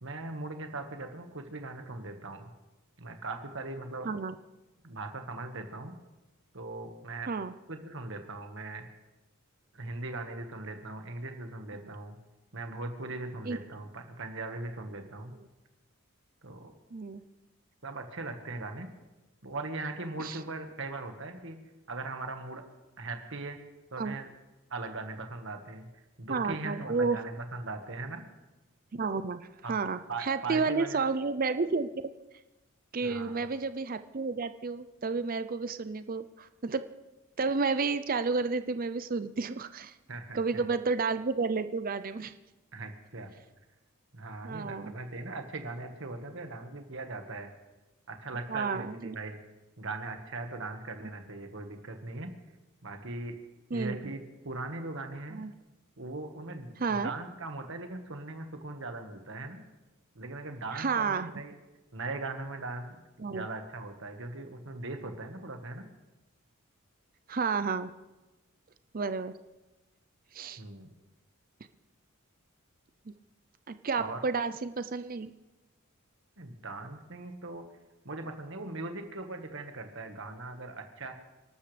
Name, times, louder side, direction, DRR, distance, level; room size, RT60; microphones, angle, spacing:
voice 1, 0.0-2.5 3.0-4.1 4.8-5.9 6.5-7.3 7.7-8.8 9.7-12.2 12.5-15.3 16.4-16.7 17.8-18.9 19.4-21.6 21.9-22.6 23.0-23.6 23.9-24.3 24.7-25.9 26.2-28.2 29.6-29.7 30.1-31.0 33.0-33.4 40.1-40.6 42.7-43.4 44.1-47.5 48.1-49.4 49.8-52.3 52.8-53.3 53.7-55.4 56.0-59.6 60.1-61.5 61.9-62.8 63.2-65.8 70.6-70.9 74.0-74.2 76.4-77.6 78.0-81.1, right 2 dB, 60° right, 5 dB, 1.6 m, -39 dB
voice 2, 4.0-4.3 7.3-7.5 13.5-13.6 16.9-17.2 20.2-20.4 24.0-24.1 26.3-27.2 28.9-32.1 32.9-36.8 37.4-39.9 40.3-42.3 44.4-44.9 48.5-49.2 53.7-54.0 55.3-55.5 56.8-57.1 60.7-61.3 63.2-63.5 67.3-67.9 68.9-69.3 70.3-70.6 73.1-73.2 73.7-75.3, right 4 dB, 40° right, 12 dB, 0.5 m, -31 dB
28.5 x 12.5 x 3.4 m, 1.1 s
head